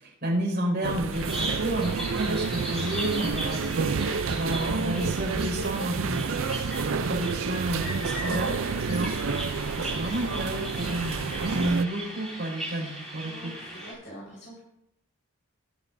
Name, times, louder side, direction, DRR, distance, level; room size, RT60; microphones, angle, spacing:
voice 1, 0.0-3.6 4.3-6.4 6.9-9.1 9.8-13.5, right 1 dB, 50° right, -3 dB, 5.3 m, -30 dB
sound 1, 0.8-11.9, right 5 dB, 65° right, 0.5 m, -30 dB
Bird vocalization bird call bird song, 1.1-13.9, right 1 dB, ahead, 5.3 m, -37 dB
voice 2, 13.2-14.6, equal, 60° left, -7 dB, 4.6 m, -44 dB
20.0 x 9.5 x 2.7 m, 0.80 s
head